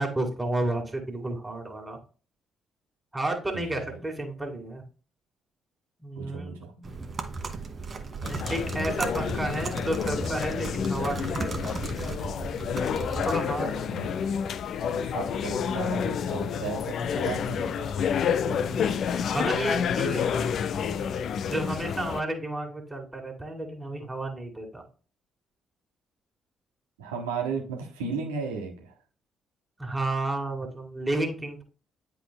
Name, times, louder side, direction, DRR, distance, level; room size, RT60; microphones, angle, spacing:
voice 1, 0.0-2.0 3.1-4.8 6.0-6.6 8.3-11.8 13.2-14.3 18.4-18.9 19.3-20.6 21.4-24.8 29.8-31.6, right 2 dB, 15° right, 2 dB, 2.1 m, -32 dB
voice 2, 3.5-4.0 6.1-6.9 13.9-14.1 14.8-18.0 27.0-28.9, right 5 dB, 75° right, 2 dB, 1.3 m, -35 dB
sound 1, 6.8-13.4, right 4 dB, 40° right, 1.1 m, -35 dB
sound 2, 8.2-22.2, left 7 dB, 55° left, 0.4 m, -29 dB
9.9 x 4.7 x 2.2 m, 0.36 s
figure-of-eight pair, 40°, 0 cm